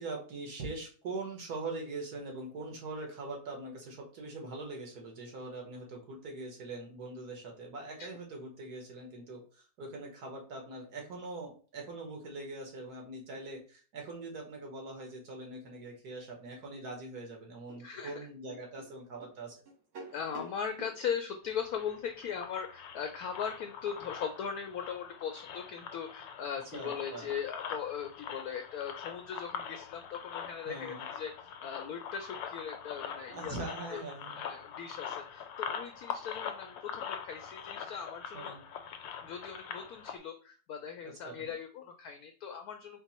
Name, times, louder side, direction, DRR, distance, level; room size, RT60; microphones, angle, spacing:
voice 1, 0.0-19.6 26.7-27.3 30.7-31.1 33.3-34.4 38.3-38.6 41.0-41.5, right 2 dB, 60° right, 1 dB, 1.7 m, -42 dB
sound 1, 17.7-21.0, right 1 dB, 85° right, 1.7 m, -49 dB
voice 2, 17.8-18.2 20.1-33.6 33.9-34.0 34.3-38.6 39.2-43.0, left 7 dB, 70° left, 5 dB, 0.9 m, -39 dB
sound 2, 21.5-40.2, left 7 dB, 85° left, 1.3 m, -43 dB
4.4 x 2.1 x 4.1 m, 0.38 s
omnidirectional pair, 1.9 m